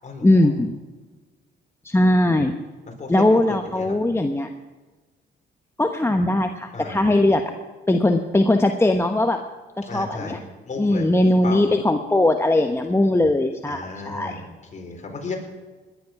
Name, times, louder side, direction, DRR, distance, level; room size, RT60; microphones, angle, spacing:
voice 1, 0.2-0.8 1.8-2.5 3.1-4.5 5.8-7.5 7.9-9.4 9.8-10.4 10.7-14.4, left 1 dB, 15° left, 5 dB, 1.0 m, -20 dB
voice 2, 3.0-3.9 6.7-7.1 9.9-10.4 10.6-11.1 11.4-11.7 13.7-14.4 14.7-15.4, left 4 dB, 35° left, 2 dB, 4.4 m, -33 dB
19.5 x 11.0 x 6.0 m, 1.3 s
cardioid pair, 90°, 20 cm